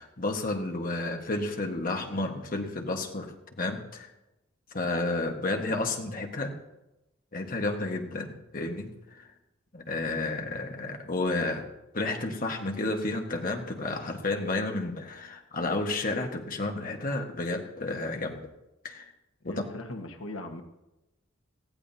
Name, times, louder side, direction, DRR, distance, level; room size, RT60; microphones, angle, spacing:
voice 1, 0.0-4.1 4.7-6.5 7.3-9.3 9.7-11.6 11.9-18.4 18.8-19.0 19.4-19.6, left 2 dB, 45° left, 3 dB, 1.4 m, -31 dB
voice 2, 19.4-20.6, left 1 dB, 85° left, 5 dB, 1.4 m, -39 dB
19.5 x 14.5 x 2.8 m, 0.97 s
head